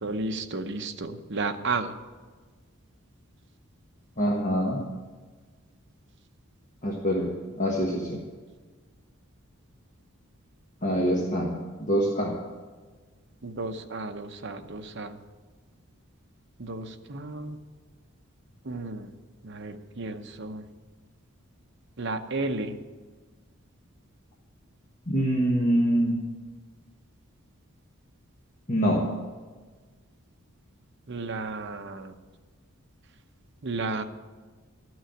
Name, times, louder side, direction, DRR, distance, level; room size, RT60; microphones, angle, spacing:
voice 1, 0.0-1.9 13.4-15.2 16.6-17.6 18.7-19.1 19.4-20.6 22.0-22.7 31.1-32.1 33.6-34.0, right 3 dB, 55° right, 6 dB, 0.8 m, -33 dB
voice 2, 4.2-4.8 6.8-7.3 7.6-8.2 10.8-12.3 25.1-26.1 28.7-29.0, equal, 35° left, -2 dB, 1.4 m, -25 dB
12.5 x 6.3 x 8.4 m, 1.4 s
head